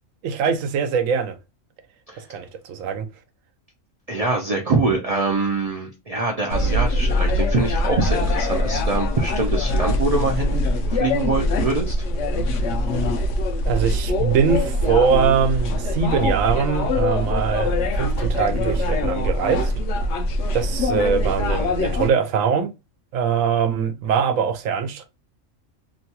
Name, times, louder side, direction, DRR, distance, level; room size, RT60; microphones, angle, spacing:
voice 1, 0.2-1.4 2.2-3.1 13.6-19.7 20.5-22.7 23.1-25.0, right 6 dB, 90° right, 1.0 m, -22 dB
voice 2, 4.1-11.9, right 3 dB, 60° right, 0.4 m, -24 dB
sound 1, 6.5-22.1, left 1 dB, 70° left, 0.8 m, -23 dB
2.9 x 2.2 x 2.8 m
omnidirectional pair, 1.3 m